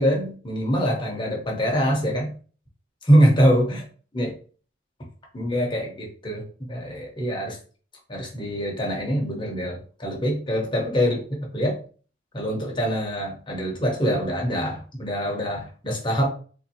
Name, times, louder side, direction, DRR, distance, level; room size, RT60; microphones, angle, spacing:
voice 1, 0.0-2.3 3.0-3.8 4.1-4.3 5.3-6.4 6.7-7.6 8.1-11.8 12.3-16.3, equal, 25° left, 0 dB, 0.8 m, -24 dB
3.6 x 2.6 x 2.8 m, 0.40 s
head